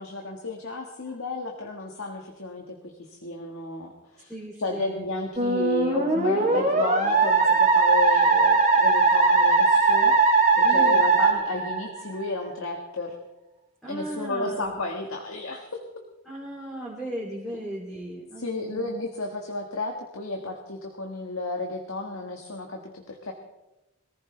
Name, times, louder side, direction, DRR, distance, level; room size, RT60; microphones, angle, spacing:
voice 1, 0.0-2.8 3.1-4.3 4.6-13.1 13.9-15.8 18.4-23.3, left 2 dB, 65° left, 1 dB, 1.6 m, -32 dB
voice 2, 4.3-5.1 10.6-11.1 11.6-11.7 13.8-14.7 16.2-18.9, right 1 dB, ahead, -7 dB, 2.9 m, -36 dB
Musical instrument, 5.4-12.2, right 4 dB, 30° right, 2.4 m, -20 dB
22.0 x 15.5 x 3.3 m, 0.98 s
head